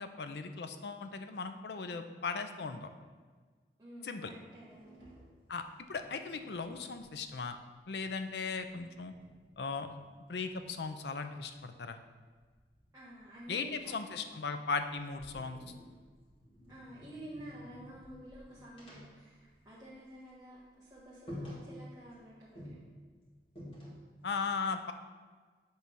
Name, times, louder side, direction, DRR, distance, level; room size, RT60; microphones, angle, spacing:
voice 1, 0.0-2.9 4.0-4.3 5.5-5.6 5.9-7.6 7.9-9.1 9.6-9.9 10.3-12.0 13.5-15.6 24.2-24.9, left 4 dB, 70° left, 8 dB, 0.5 m, -37 dB
voice 2, 3.8-5.1 12.9-13.9 16.7-22.8, right 1 dB, 20° right, -9 dB, 1.3 m, -51 dB
sound 1, 4.6-7.8 8.1-11.0 12.4-14.4 14.8-20.1 20.4-20.6 20.9-21.0 21.3-22.2 22.6-24.3, equal, 30° left, 1.9 m, -52 dB
8.2 x 3.4 x 6.1 m, 1.5 s
head